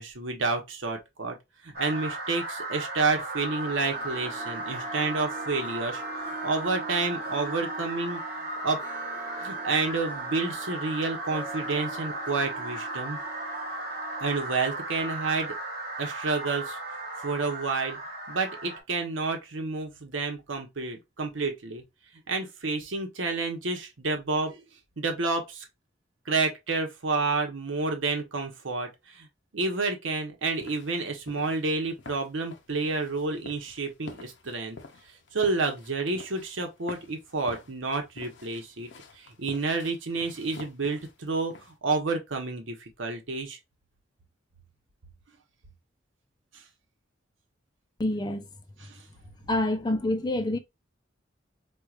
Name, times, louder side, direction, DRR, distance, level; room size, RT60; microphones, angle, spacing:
voice 1, 0.0-1.4 1.6-6.0 6.4-8.2 8.6-8.8 9.4-13.2 14.2-15.6 16.0-16.8 17.2-18.0 18.3-21.8 22.3-24.6 25.0-25.6 26.3-29.3 29.5-34.8 35.3-38.9 39.2-43.6 48.9-49.0, right 3 dB, 80° right, 0.9 m, -29 dB
sound 1, 1.7-18.8, right 2 dB, 55° right, 0.9 m, -36 dB
Harp, 3.6-14.6 14.8-14.9, right 3 dB, 5° right, 1.0 m, -45 dB
sound 2, 30.6-41.8, left 3 dB, 65° left, 0.6 m, -48 dB
voice 2, 48.0-48.5 49.4-50.6, left 1 dB, 20° left, 0.5 m, -27 dB
4.4 x 2.3 x 2.4 m
head